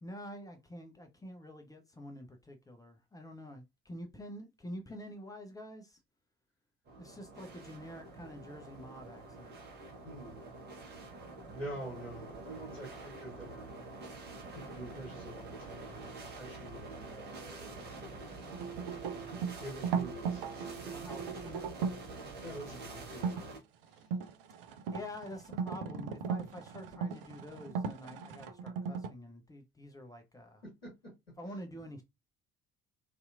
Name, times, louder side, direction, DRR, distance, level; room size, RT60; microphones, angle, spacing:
voice 1, 0.0-6.0 7.0-9.6 20.8-21.8 24.9-30.6 31.4-32.0, equal, 10° left, 0.6 m, -47 dB
sound 1, 6.9-23.6, right 3 dB, 35° right, 1.1 m, -47 dB
voice 2, 10.0-10.4 10.7-10.8 11.5-13.7 14.3-18.3 18.6-18.8 19.6-21.1 22.4-23.4 23.9-24.0 30.8-31.1, right 1 dB, 90° left, 1.0 m, -47 dB
sound 2, 18.5-22.1 23.1-23.4 23.9-29.1, right 6 dB, 70° right, 0.5 m, -37 dB
2.7 x 2.4 x 2.4 m
figure-of-eight pair, 55°, 30 cm